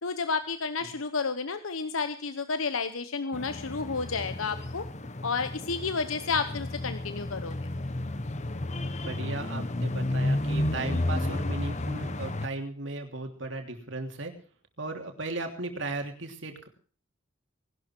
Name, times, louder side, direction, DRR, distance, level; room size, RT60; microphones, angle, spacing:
voice 1, 0.0-4.9 5.2-7.5, left 4 dB, 90° left, 10 dB, 1.0 m, -31 dB
sound 1, 3.3-12.5, left 1 dB, 35° left, 1.1 m, -32 dB
voice 2, 9.0-14.3 14.8-16.7, right 2 dB, 65° right, 5 dB, 3.1 m, -36 dB
19.5 x 12.0 x 4.6 m, 0.42 s
head